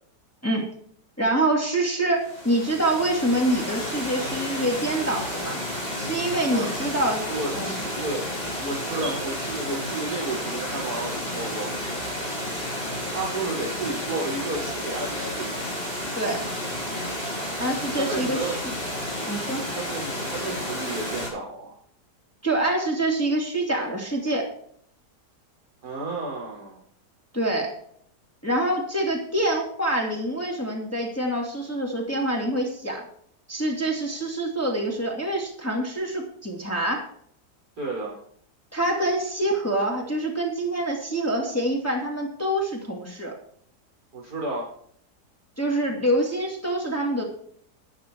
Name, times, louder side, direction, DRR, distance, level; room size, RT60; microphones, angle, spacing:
voice 1, 1.2-5.6 6.0-7.2 7.5-7.8 16.1-16.4 17.6-18.7 19.3-19.6 22.4-24.5 27.3-27.7 28.4-33.0 33.5-37.0 38.7-43.4 45.6-47.2, right 1 dB, 10° left, -1 dB, 2.6 m, -26 dB
Water, 2.2-21.3, left 1 dB, 35° left, 5.7 m, -31 dB
voice 2, 7.3-8.3 8.6-11.7 13.1-15.6 18.0-18.6 19.6-21.8 25.8-26.8 37.8-38.2 44.1-44.7, right 2 dB, 60° right, -3 dB, 6.3 m, -32 dB
13.0 x 9.3 x 4.7 m, 0.62 s
omnidirectional pair, 1.8 m